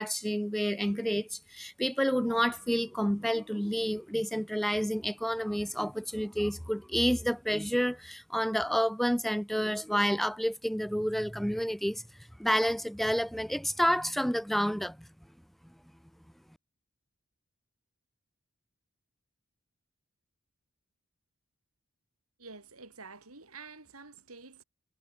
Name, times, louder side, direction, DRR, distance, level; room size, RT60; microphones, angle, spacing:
voice 1, 0.0-12.0 12.4-15.0, equal, ahead, 0.7 m, -29 dB
voice 2, 22.4-24.6, right 4 dB, 90° right, 5.0 m, -49 dB
head